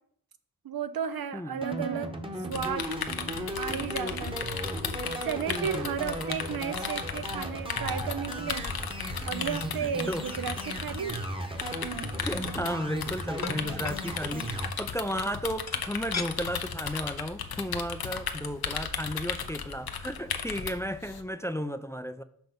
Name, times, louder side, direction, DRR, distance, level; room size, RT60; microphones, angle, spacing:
voice 1, 0.6-2.1 2.5-2.9 3.6-4.4 5.2-8.6 9.2-11.2, right 7 dB, 75° right, 0.7 m, -33 dB
sound 1, 1.6-14.7, right 1 dB, 15° right, 1.0 m, -36 dB
sound 2, 2.5-21.2, left 7 dB, 80° left, 0.7 m, -36 dB
voice 2, 5.5-5.9 9.8-10.3 12.2-22.2, equal, 10° left, 0.4 m, -34 dB
sound 3, 12.5-12.6 13.4-14.0 15.7-16.3 16.8-17.0 17.3-17.5 18.5-18.6 18.8-18.9, left 5 dB, 45° left, 0.8 m, -37 dB
6.2 x 5.4 x 5.1 m
wide cardioid pair, 60°, 36 cm